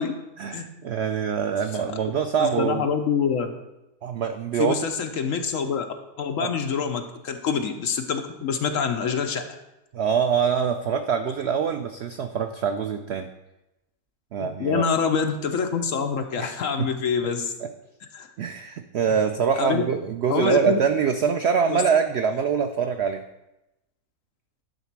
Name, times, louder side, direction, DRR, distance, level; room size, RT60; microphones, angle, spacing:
voice 1, 0.4-2.9 4.0-4.8 6.4-6.5 9.9-13.3 14.3-14.9 16.4-16.5 16.8-16.9 17.6-17.7 18.4-23.2, right 7 dB, 80° right, 7 dB, 0.6 m, -24 dB
voice 2, 2.4-3.5 4.6-5.9 6.2-9.4 14.4-17.5 18.1-18.3 19.6-19.8 20.3-20.8 21.7-21.8, left 6 dB, 60° left, 6 dB, 1.1 m, -26 dB
10.5 x 4.0 x 5.9 m, 0.93 s
omnidirectional pair, 1.6 m